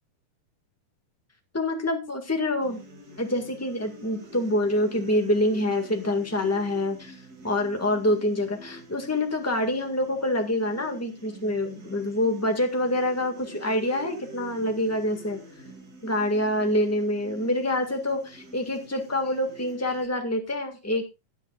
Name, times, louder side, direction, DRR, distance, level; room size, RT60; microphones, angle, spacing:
voice 1, 1.5-2.8 3.2-7.2 7.4-15.4 16.0-21.1, left 1 dB, 25° left, 3 dB, 0.3 m, -26 dB
sound 1, 2.6-20.1, right 2 dB, 30° right, 2.4 m, -46 dB
17.5 x 10.5 x 2.4 m, 0.26 s
omnidirectional pair, 3.9 m